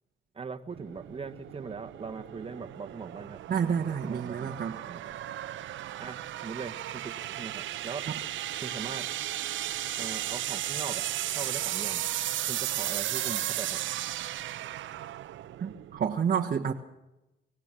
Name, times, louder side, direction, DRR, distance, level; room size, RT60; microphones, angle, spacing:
voice 1, 0.3-3.4 4.0-5.1 6.0-8.1 8.6-9.1 10.0-11.1 11.3-12.0 12.4-14.0, right 5 dB, 30° right, 9 dB, 1.5 m, -40 dB
sound 1, 0.7-16.1, right 13 dB, 75° right, 0.8 m, -35 dB
voice 2, 3.5-4.8 15.6-16.7, right 7 dB, 45° right, 2 dB, 1.3 m, -29 dB
24.0 x 17.0 x 7.6 m, 1.0 s
cardioid pair, 90°, 20 cm